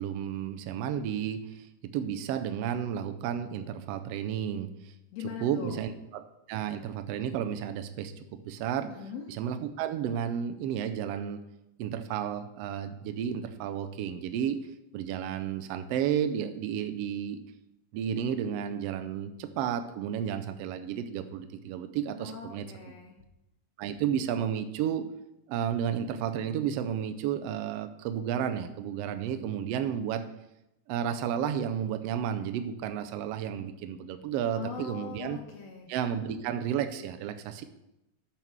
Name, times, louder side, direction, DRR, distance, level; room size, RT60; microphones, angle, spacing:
voice 1, 0.0-4.9 5.4-8.1 8.5-8.9 9.3-11.4 11.8-14.6 14.9-17.4 17.9-22.7 23.8-25.0 25.5-30.3 30.9-35.4 35.9-37.6, right 9 dB, 80° right, 8 dB, 1.4 m, -32 dB
voice 2, 5.1-5.8 8.9-9.3 22.2-23.1 34.5-35.9, left 7 dB, 65° left, 1 dB, 1.9 m, -41 dB
13.0 x 4.4 x 4.6 m, 0.88 s
omnidirectional pair, 3.5 m